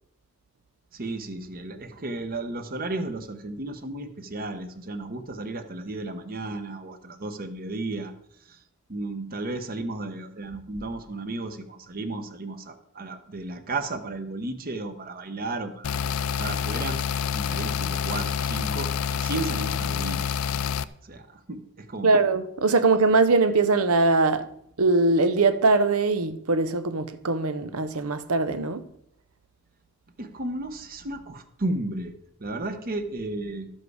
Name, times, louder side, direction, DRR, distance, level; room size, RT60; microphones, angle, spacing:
voice 1, 0.9-8.1 8.4-8.6 8.9-16.1 16.4-17.0 17.3-20.3 21.0-22.2 30.2-33.7, right 2 dB, 45° right, 1.0 m, -34 dB
sound 1, 15.8-20.8, left 7 dB, 70° left, 0.4 m, -27 dB
voice 2, 22.0-24.4 24.8-28.8, right 3 dB, 85° right, 0.8 m, -21 dB
12.0 x 7.6 x 4.8 m
head